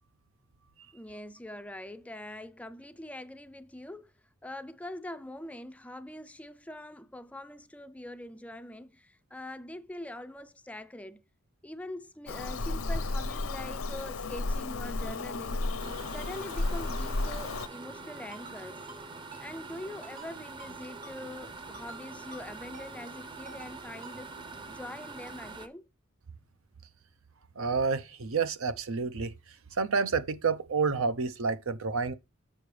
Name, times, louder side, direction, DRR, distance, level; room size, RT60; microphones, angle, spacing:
voice 1, 0.9-4.1 4.4-11.2 11.6-15.7 16.1-18.9 19.4-24.3 24.7-25.9, left 1 dB, 5° left, 0.4 m, -43 dB
Bird vocalization bird call bird song, 12.3-17.7, left 2 dB, 90° left, 0.8 m, -33 dB
sound 1, 15.8-25.7, right 3 dB, 25° right, 0.7 m, -45 dB
Ringtone, 17.6-17.7 18.3-18.6 18.9-19.0 19.3-19.4 20.0-20.3 20.6-20.7 21.0-21.2 21.7-22.0 22.3-22.4 22.7-22.9 23.4-23.7 24.0-24.2, right 3 dB, 40° right, 1.0 m, -49 dB
voice 2, 27.6-29.3 29.7-32.1, right 5 dB, 80° right, 0.8 m, -29 dB
7.4 x 6.7 x 3.3 m
head